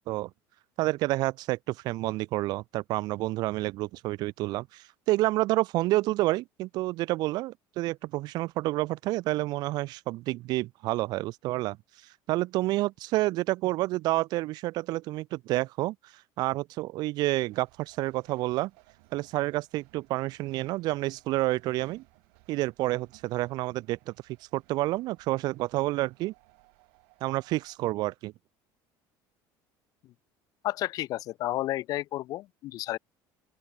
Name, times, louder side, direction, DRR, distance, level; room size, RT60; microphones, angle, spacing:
voice 1, 0.8-11.8 12.3-16.0 16.4-18.7 19.1-22.0 22.5-24.1 24.5-26.3 27.2-28.3, right 18 dB, 50° right, 0.4 m, -29 dB
sound 1, 17.4-27.8, right 40 dB or more, 85° right, 5.0 m, -62 dB
voice 2, 30.6-33.0, left 15 dB, 45° left, 0.4 m, -31 dB
open air
cardioid pair, 165°, 9 cm